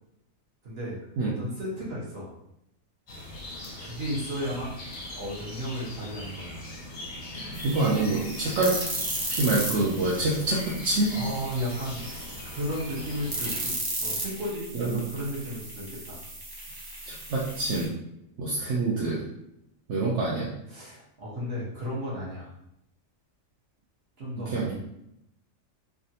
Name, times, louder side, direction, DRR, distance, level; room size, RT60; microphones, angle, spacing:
voice 1, 0.6-2.3 3.8-4.8 5.1-6.6 11.1-12.1 12.4-16.2 20.7-22.5 24.2-24.6, equal, 50° right, -6 dB, 1.2 m, -34 dB
sound 1, 3.1-13.7, left 1 dB, 45° left, 0.7 m, -40 dB
voice 2, 7.3-8.8 9.3-11.2 14.7-15.0 17.1-17.9 18.4-19.2 19.9-20.5 24.4-24.7, right 2 dB, 70° right, -4 dB, 0.9 m, -26 dB
sound 2, 7.5-17.8, right 1 dB, 35° right, 0.4 m, -36 dB
3.3 x 2.4 x 2.7 m, 0.81 s
omnidirectional pair, 1.4 m